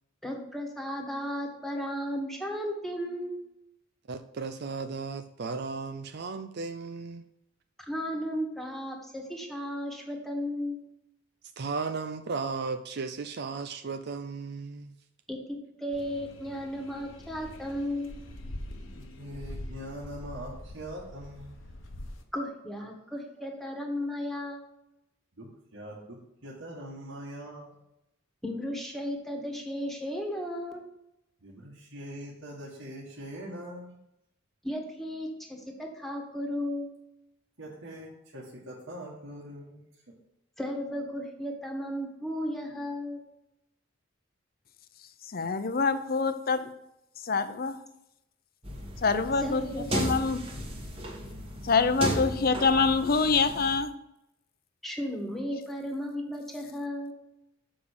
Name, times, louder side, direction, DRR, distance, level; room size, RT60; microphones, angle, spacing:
voice 1, 0.2-3.4 7.9-10.8 15.3-15.4 15.8-18.1 22.3-24.6 28.4-30.8 34.6-36.9 40.6-43.2 49.4-49.9 54.8-57.1, equal, ahead, 1 dB, 1.6 m, -34 dB
voice 2, 4.1-7.2 11.6-14.9, right 4 dB, 55° right, 8 dB, 0.5 m, -35 dB
sound 1, 15.9-22.2, left 1 dB, 75° left, 1.1 m, -44 dB
voice 3, 19.2-21.6 25.3-27.7 31.4-34.0 37.6-39.8, equal, 75° right, -6 dB, 1.8 m, -42 dB
voice 4, 45.3-46.7 47.2-47.8 49.0-50.4 51.6-53.9, left 4 dB, 50° left, 11 dB, 0.7 m, -25 dB
sound 2, 48.6-53.8, right 1 dB, 30° right, 1.5 m, -35 dB
7.2 x 5.2 x 6.6 m, 0.85 s
head